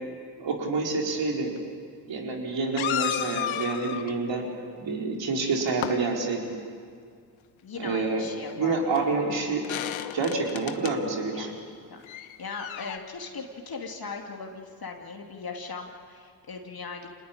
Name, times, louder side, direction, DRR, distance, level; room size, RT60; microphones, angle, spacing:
voice 1, 0.4-1.5 2.1-4.4 4.8-6.5 7.8-8.3 8.5-9.6 10.1-11.5, right 3 dB, 60° right, 0 dB, 4.9 m, -28 dB
sound 1, 1.6-1.7 2.7-4.1 5.4-6.0 8.5-8.6 8.9-9.0 9.6-10.9 12.0-13.0, left 11 dB, 75° left, 1.2 m, -32 dB
voice 2, 7.6-8.8 11.3-11.5 11.9-17.1, left 4 dB, 45° left, 2 dB, 2.7 m, -39 dB
26.0 x 20.0 x 8.9 m, 2.2 s
supercardioid pair, 50°, 48 cm